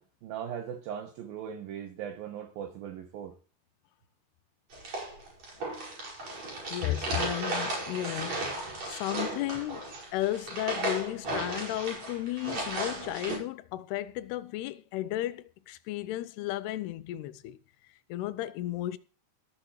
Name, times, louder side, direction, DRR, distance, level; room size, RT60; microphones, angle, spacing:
voice 1, 0.2-3.4, right 8 dB, 70° right, 2.6 m, -39 dB
sound 1, 4.7-13.4, right 2 dB, 40° right, 6.7 m, -35 dB
voice 2, 6.7-8.5 8.9-9.9 10.1-17.6 18.1-19.0, left 14 dB, 85° left, 2.7 m, -34 dB
14.0 x 13.5 x 3.2 m
omnidirectional pair, 4.7 m